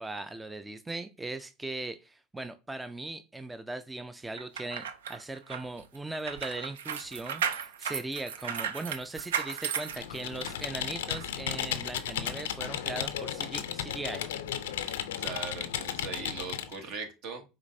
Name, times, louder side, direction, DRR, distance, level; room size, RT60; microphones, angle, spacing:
voice 1, 0.0-14.3, right 2 dB, 10° right, 0.4 m, -39 dB
sound 1, 4.4-10.7 11.1-11.3, right 8 dB, 85° right, 0.4 m, -35 dB
Computer keyboard, 9.9-16.8, left 10 dB, 85° left, 0.4 m, -34 dB
voice 2, 14.8-17.4, right 4 dB, 60° right, 1.2 m, -40 dB
5.0 x 3.2 x 2.6 m
hypercardioid pair, 90°, 0 cm